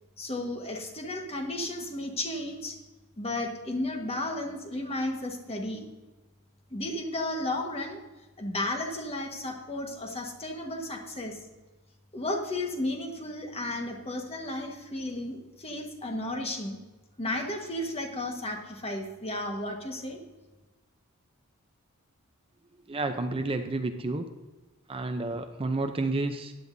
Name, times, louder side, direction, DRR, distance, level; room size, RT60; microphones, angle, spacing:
voice 1, 0.2-2.8 3.2-5.8 6.7-8.0 8.4-11.4 12.1-16.8 17.2-20.2, left 1 dB, 30° left, 2 dB, 1.4 m, -33 dB
voice 2, 22.9-24.3 24.9-26.5, right 2 dB, 25° right, 7 dB, 0.6 m, -30 dB
15.0 x 10.5 x 2.7 m, 1.2 s
head